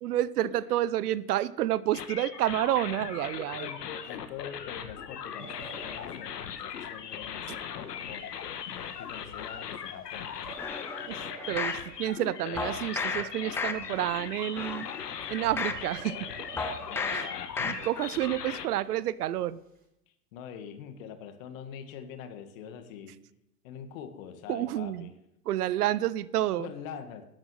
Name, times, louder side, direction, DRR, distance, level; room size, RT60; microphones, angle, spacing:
voice 1, 0.0-3.7 11.1-11.2 11.5-14.9 15.3-16.3 17.1-17.2 17.6-19.6 24.5-25.1 25.5-26.7, right 13 dB, 70° right, 20 dB, 0.7 m, -29 dB
sound 1, 1.9-18.7, left 8 dB, 80° left, 1.4 m, -39 dB
voice 2, 3.6-8.6 8.9-10.4 16.9-17.5 20.3-23.2 23.6-25.1 26.6-27.2, left 8 dB, 55° left, 9 dB, 1.8 m, -44 dB
sound 2, 5.4-6.2 6.8-7.3 7.7-7.8 8.1-8.2 8.5-12.0 13.0-13.1 13.4-13.5 14.0-14.1 14.4-18.6 18.8-19.2 19.6-19.8, right 3 dB, 20° right, 2.9 m, -49 dB
sound 3, 10.6-11.8 12.6-13.2 13.6-14.1 14.5-15.8 16.6-17.2 17.6-18.1 18.5-18.6, left 4 dB, 5° left, 0.4 m, -34 dB
12.0 x 7.3 x 7.6 m, 0.86 s
hypercardioid pair, 105°, 48 cm